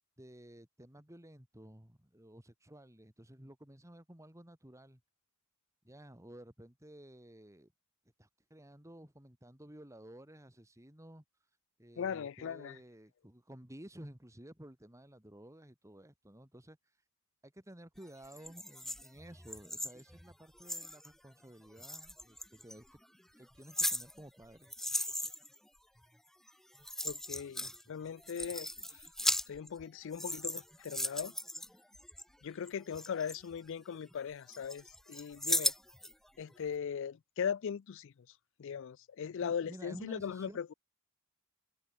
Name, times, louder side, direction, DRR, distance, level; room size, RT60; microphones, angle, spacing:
voice 1, 0.2-5.0 5.8-7.7 8.2-11.2 11.8-16.8 17.4-22.4 22.6-23.0 23.4-24.7 27.6-27.7 39.4-40.6, right 1 dB, 15° right, 2.4 m, -53 dB
voice 2, 12.0-12.8 27.0-28.7 29.5-31.3 32.4-35.7 36.4-38.1 38.6-40.7, left 7 dB, 60° left, 0.4 m, -39 dB
sound 1, 18.2-21.1 21.8-22.8 23.4-25.6 26.5-26.6 26.8-27.8 28.1-29.8 30.1-32.2 32.7-34.1 34.5-36.1 36.5-36.6, left 1 dB, ahead, 0.8 m, -37 dB
open air
head